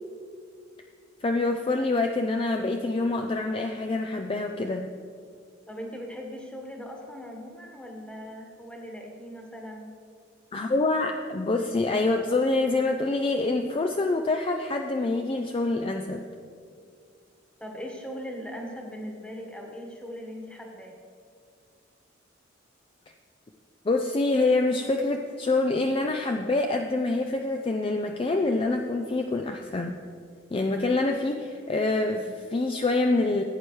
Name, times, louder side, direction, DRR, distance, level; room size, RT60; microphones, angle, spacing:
voice 1, 1.2-4.9 10.5-16.2 23.9-30.0 30.5-33.4, left 2 dB, 30° left, 4 dB, 0.4 m, -26 dB
voice 2, 5.7-10.0 17.6-21.0, equal, 5° left, 1 dB, 1.3 m, -39 dB
15.5 x 8.6 x 3.2 m, 2.2 s
head